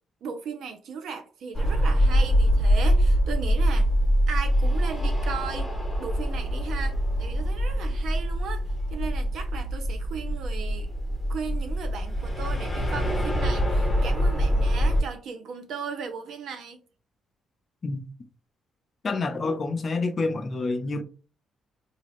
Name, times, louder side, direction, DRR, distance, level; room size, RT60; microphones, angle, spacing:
voice 1, 0.2-3.9 4.3-5.7 6.0-10.9 11.3-16.8, right 6 dB, 70° right, 0.6 m, -36 dB
sound 1, 1.5-15.0, equal, 10° left, 1.0 m, -24 dB
voice 2, 19.0-21.0, left 3 dB, 40° left, 0.5 m, -28 dB
2.9 x 2.4 x 3.1 m
cardioid pair, 90°, 0 cm